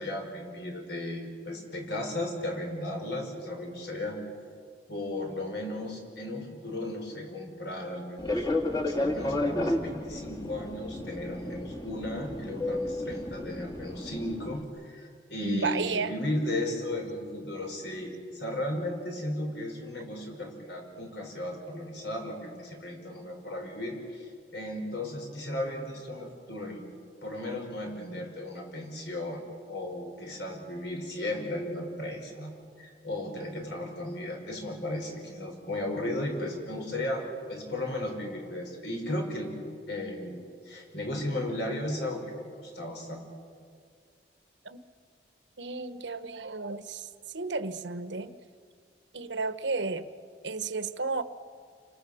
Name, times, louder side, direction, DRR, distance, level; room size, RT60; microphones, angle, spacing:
voice 1, 0.0-4.2 4.9-8.5 8.9-26.8 27.2-29.4 29.7-32.5 32.8-39.5 39.9-43.2, left 1 dB, 70° left, 2 dB, 5.9 m, -35 dB
Fixed-wing aircraft airplane, 8.2-14.6, left 1 dB, 20° left, 1.9 m, -32 dB
voice 2, 15.4-16.1 44.6-44.8 45.6-47.1 47.3-48.4 49.1-50.1 50.4-51.2, right 3 dB, 80° right, 11 dB, 1.1 m, -32 dB
29.5 x 25.5 x 7.0 m, 2.1 s
head